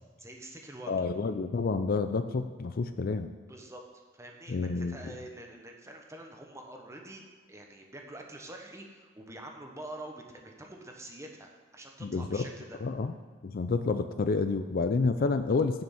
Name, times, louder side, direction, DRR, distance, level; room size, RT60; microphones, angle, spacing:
voice 1, 0.2-1.1 3.5-3.8 4.1-7.2 7.5-12.8, right 1 dB, 15° right, 2 dB, 1.1 m, -46 dB
voice 2, 0.9-3.3 4.5-5.0 12.0-12.4 12.8-13.1 13.4-15.8, left 4 dB, 45° left, 9 dB, 0.4 m, -29 dB
7.3 x 6.1 x 7.1 m, 1.5 s
head